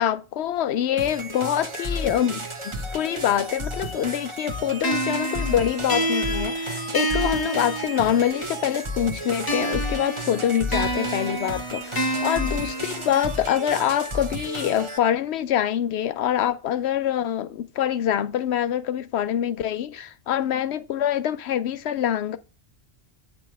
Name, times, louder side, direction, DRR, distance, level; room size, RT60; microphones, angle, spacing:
voice 1, 0.0-22.4, left 10 dB, 75° left, 0.8 m, -25 dB
sound 1, 1.0-15.0, equal, 30° right, 0.8 m, -33 dB
sound 2, 4.8-8.5 9.5-13.5, right 1 dB, 25° left, 0.6 m, -29 dB
8.3 x 3.1 x 5.8 m
omnidirectional pair, 1.2 m